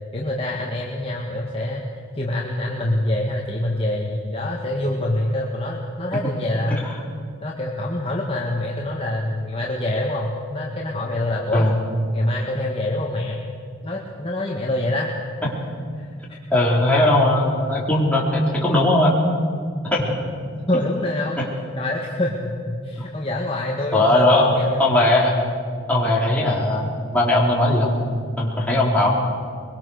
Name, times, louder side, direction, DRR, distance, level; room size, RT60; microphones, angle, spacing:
voice 1, 0.1-1.9 2.2-6.9 7.4-11.7 12.1-13.4 13.8-15.1 16.0-16.4 20.7-21.4 21.8-24.8, left 1 dB, 25° left, -3 dB, 1.9 m, -25 dB
voice 2, 16.5-19.1 19.8-20.0 20.7-20.8 23.9-25.4 25.9-28.0 28.4-29.1, left 1 dB, 5° left, -5 dB, 4.2 m, -19 dB
23.5 x 22.5 x 6.6 m, 2.2 s
head